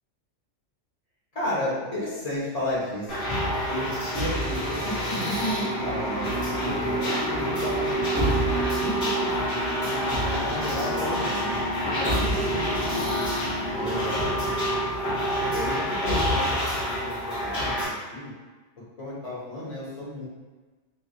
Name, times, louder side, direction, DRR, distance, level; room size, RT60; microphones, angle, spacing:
voice 1, 1.3-3.1 3.7-11.5 12.0-13.1 13.7-14.3 15.5-18.3 19.0-20.3, left 1 dB, 35° left, -8 dB, 1.0 m, -33 dB
sound 1, 3.1-17.9, equal, 60° left, 1.3 m, -27 dB
sound 2, 5.7-14.5, right 1 dB, 55° right, 0.9 m, -35 dB
3.2 x 2.6 x 2.3 m, 1.3 s
omnidirectional pair, 1.3 m